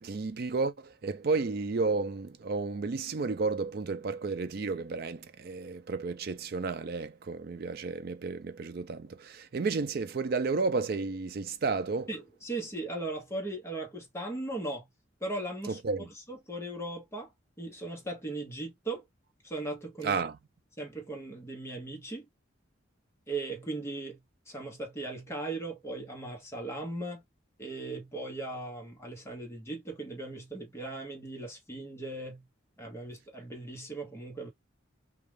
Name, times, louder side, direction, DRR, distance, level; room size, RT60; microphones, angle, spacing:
voice 1, 0.0-12.1 15.7-16.1 20.0-20.4, right 4 dB, 50° right, 0.4 m, -32 dB
voice 2, 12.1-14.9 15.2-15.8 16.3-17.3 17.6-19.1 19.4-20.2 20.8-22.3 23.3-24.2 24.5-27.2 27.6-32.5 32.8-34.5, right 2 dB, 15° left, 0.9 m, -38 dB
2.4 x 2.4 x 3.2 m
head